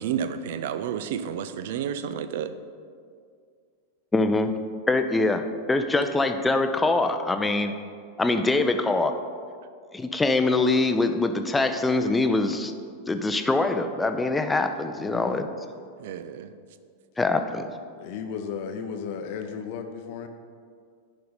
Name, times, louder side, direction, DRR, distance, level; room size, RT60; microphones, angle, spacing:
voice 1, 0.0-2.5 16.0-16.5, right 8 dB, 55° right, 11 dB, 0.5 m, -30 dB
voice 2, 4.1-4.5 4.9-7.7 8.2-9.1 9.9-12.7 13.1-15.5 17.2-17.7, left 2 dB, 10° left, 7 dB, 0.5 m, -23 dB
voice 3, 14.9-15.5 18.0-20.3, left 6 dB, 50° left, 7 dB, 0.7 m, -35 dB
10.5 x 5.3 x 4.3 m, 2.2 s
figure-of-eight pair, 90°, 0 cm